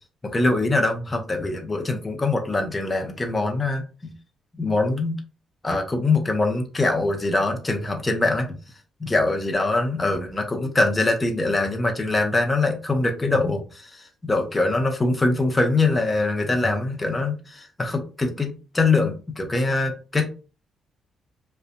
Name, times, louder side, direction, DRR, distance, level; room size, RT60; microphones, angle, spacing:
voice 1, 0.2-4.1 4.6-5.2 5.6-8.6 9.0-20.3, left 2 dB, 20° left, 0.5 m, -23 dB
2.5 x 2.1 x 2.4 m
cardioid pair, 90°, 0 cm